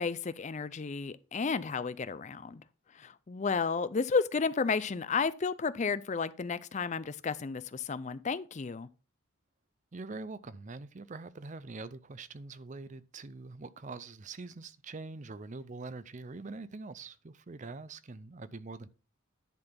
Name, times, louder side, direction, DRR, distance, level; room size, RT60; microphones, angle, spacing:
voice 1, 0.0-2.6 2.9-8.9, left 5 dB, 35° left, 0.4 m, -32 dB
voice 2, 9.9-18.9, right 3 dB, 35° right, 0.5 m, -44 dB
10.5 x 4.1 x 5.7 m
head